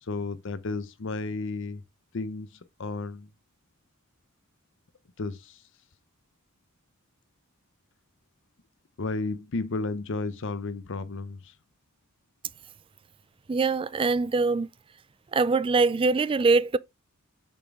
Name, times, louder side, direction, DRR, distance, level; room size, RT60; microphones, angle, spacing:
voice 1, 0.0-1.8 2.1-3.3 5.2-5.6 9.0-11.5, left 3 dB, 60° left, 0.7 m, -33 dB
voice 2, 13.5-14.7 15.3-16.8, right 4 dB, 25° right, 0.3 m, -23 dB
6.8 x 6.1 x 3.5 m
head